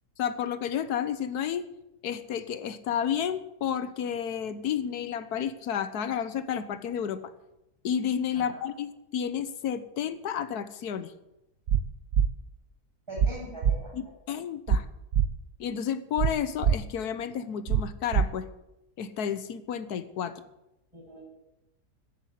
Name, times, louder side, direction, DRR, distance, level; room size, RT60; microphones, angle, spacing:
voice 1, 0.2-1.7 2.0-7.2 7.8-11.1 13.9-14.8 15.6-18.5 19.0-20.4, left 8 dB, 70° left, 12 dB, 1.5 m, -31 dB
sound 1, 11.7-11.8 12.1-12.3 13.2-13.3 13.6-13.8 14.7-14.8 15.1-15.3 16.2-16.3 16.6-16.8 17.7-17.8 18.1-18.3, right 8 dB, 55° right, 1.0 m, -22 dB
voice 2, 13.1-14.1 20.9-21.2, equal, 15° right, -2 dB, 7.8 m, -42 dB
16.0 x 7.7 x 9.3 m, 0.91 s
omnidirectional pair, 1.7 m